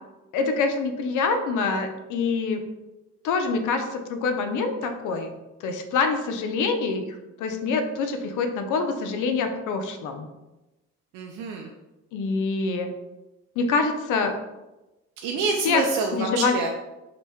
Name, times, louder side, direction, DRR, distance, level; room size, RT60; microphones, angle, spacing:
voice 1, 0.3-2.6 3.2-5.3 5.6-7.1 7.4-10.3 12.1-12.9 13.6-14.3 15.6-15.8 16.1-16.6, left 4 dB, 75° left, 6 dB, 0.5 m, -25 dB
voice 2, 11.1-11.7 15.2-16.7, right 4 dB, 85° right, 1 dB, 0.5 m, -27 dB
2.9 x 2.6 x 3.4 m, 1.0 s
cardioid pair, 100°, 30 cm